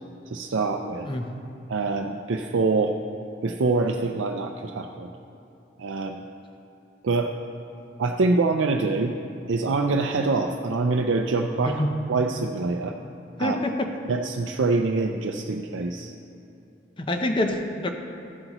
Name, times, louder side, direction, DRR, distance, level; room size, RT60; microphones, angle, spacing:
voice 1, 0.3-1.1 1.7-3.0 3.4-5.1 5.8-6.2 7.0-7.3 8.0-9.1 9.5-11.8 12.1-12.9 13.4-13.6 14.1-16.1, right 3 dB, 90° right, 3 dB, 0.5 m, -25 dB
voice 2, 13.4-13.9 17.0-17.9, left 1 dB, 25° left, 4 dB, 0.6 m, -26 dB
14.5 x 7.9 x 3.0 m, 2.9 s
head